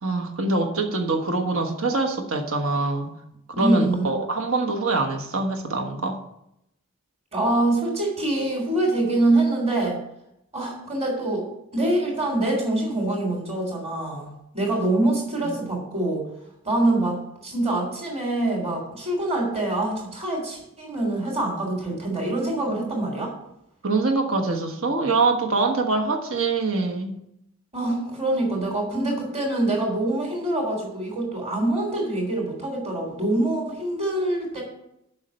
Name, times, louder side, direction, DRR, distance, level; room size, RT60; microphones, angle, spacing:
voice 1, 0.0-3.1 3.6-6.2 15.4-15.6 22.7-22.9 23.8-27.2, right 3 dB, 65° right, 3 dB, 1.4 m, -24 dB
voice 2, 3.5-4.1 7.3-10.0 10.5-11.4 11.7-16.3 16.6-23.3 27.7-34.6, right 2 dB, 30° right, 1 dB, 3.1 m, -25 dB
7.4 x 5.8 x 7.7 m, 0.79 s
head